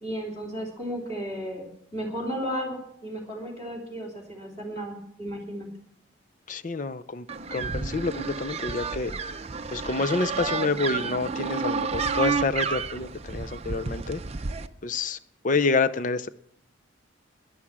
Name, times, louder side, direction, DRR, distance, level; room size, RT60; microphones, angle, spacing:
voice 1, 0.0-5.7, equal, 20° left, -5 dB, 2.9 m, -34 dB
voice 2, 6.5-7.3 7.5-9.1 9.7-14.2 14.8-15.2 15.4-16.3, left 3 dB, 40° left, 12 dB, 0.6 m, -28 dB
sound 1, 7.3-14.7, right 5 dB, 30° right, 0.6 m, -31 dB
11.0 x 11.0 x 7.3 m, 0.70 s
head